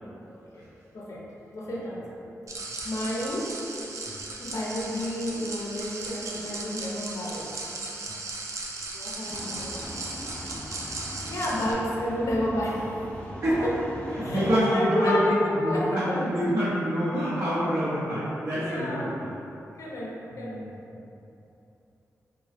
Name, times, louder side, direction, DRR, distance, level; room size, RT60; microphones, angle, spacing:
voice 1, 0.2-0.7 0.9-1.3 1.5-2.2 2.8-3.6 4.4-7.5 8.9-10.0 11.3-13.0 13.3-13.8 14.2-16.3 18.5-19.2 19.8-20.7, equal, 65° left, -4 dB, 0.6 m, -30 dB
sound 1, 2.5-11.7, right 3 dB, 65° right, 0.4 m, -37 dB
sound 2, 9.3-14.6, equal, 20° left, 0.4 m, -40 dB
voice 2, 14.1-15.2 15.5-19.1 20.3-20.8, equal, 45° right, -11 dB, 0.8 m, -27 dB
3.6 x 2.2 x 3.2 m, 2.9 s
wide cardioid pair, 80°, 6 cm